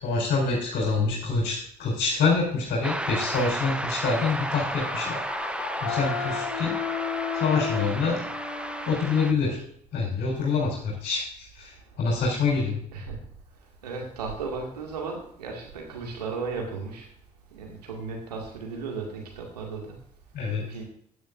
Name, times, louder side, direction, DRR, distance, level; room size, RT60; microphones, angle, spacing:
voice 1, 0.0-5.5 5.8-6.8 7.3-8.2 8.9-9.6 9.9-12.8 20.3-20.7, left 4 dB, 50° left, -4 dB, 4.0 m, -26 dB
sound 1, 2.8-9.3, right 1 dB, 5° right, 0.7 m, -33 dB
Screaming, 4.0-6.7, left 6 dB, 65° left, 2.4 m, -39 dB
Wind instrument woodwind instrument, 5.8-9.1, left 8 dB, 85° left, 0.8 m, -32 dB
voice 2, 13.8-17.1 17.5-20.0 20.7-20.8, right 4 dB, 80° right, 1 dB, 2.0 m, -35 dB
15.5 x 9.4 x 2.5 m, 0.68 s
figure-of-eight pair, 50°, 20 cm